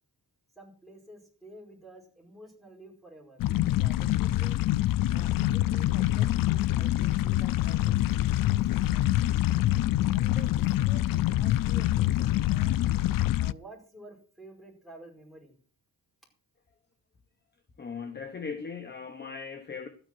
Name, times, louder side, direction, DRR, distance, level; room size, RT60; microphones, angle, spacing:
voice 1, 0.5-3.4 3.8-4.6 5.1-9.3 10.1-12.8 13.4-15.6, right 2 dB, ahead, 5.0 m, -51 dB
sound 1, 3.4-13.5, left 15 dB, 60° left, 0.5 m, -25 dB
voice 2, 17.8-19.9, left 5 dB, 25° left, 1.0 m, -38 dB
12.5 x 9.2 x 6.1 m
cardioid pair, 135°, 37 cm